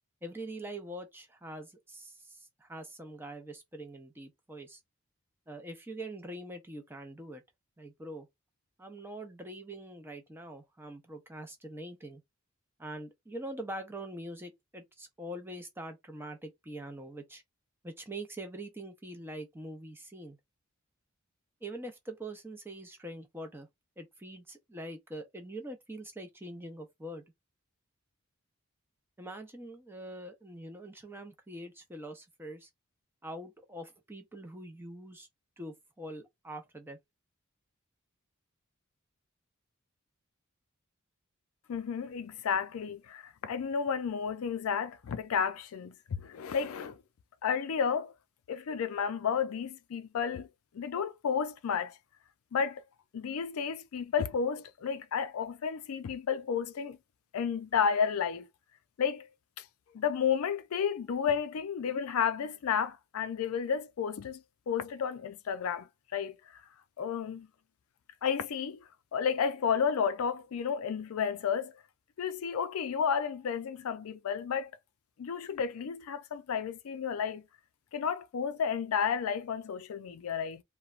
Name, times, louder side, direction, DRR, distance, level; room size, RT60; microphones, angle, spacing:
voice 1, 0.2-4.8 5.5-7.4 7.8-8.3 8.8-12.2 12.8-17.4 17.8-20.4 21.6-23.7 24.0-27.2 29.2-32.7 33.2-35.3 35.6-37.0, right 1 dB, 10° right, 0.5 m, -44 dB
voice 2, 41.7-47.0 47.4-48.1 48.5-50.5 50.7-52.0 52.5-52.8 53.1-57.0 57.3-58.5 59.0-59.3 59.6-59.7 59.9-66.4 67.0-67.5 68.2-68.8 69.1-71.7 72.2-74.7 75.2-77.4 77.9-80.6, left 7 dB, 80° left, 0.4 m, -32 dB
3.0 x 2.2 x 2.4 m
head